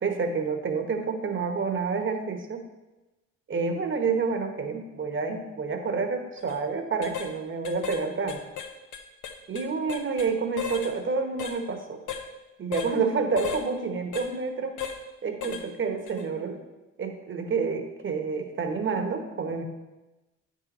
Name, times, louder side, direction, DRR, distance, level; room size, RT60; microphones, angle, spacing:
voice 1, 0.0-2.6 3.5-8.4 9.5-12.0 12.6-14.8 15.2-16.6 17.0-19.6, right 4 dB, 40° right, 6 dB, 1.1 m, -29 dB
sound 1, 6.4-6.6 7.0-7.3 7.6-8.0 8.3-10.3 10.6-10.9 11.4-11.6 12.1-12.2 12.7-12.9 13.4-13.6 14.1-14.3 14.8-15.0 15.4-15.6 16.1-16.2, left 7 dB, 85° left, 0.9 m, -35 dB
9.0 x 5.7 x 4.2 m, 1.1 s
cardioid pair, 90°, 30 cm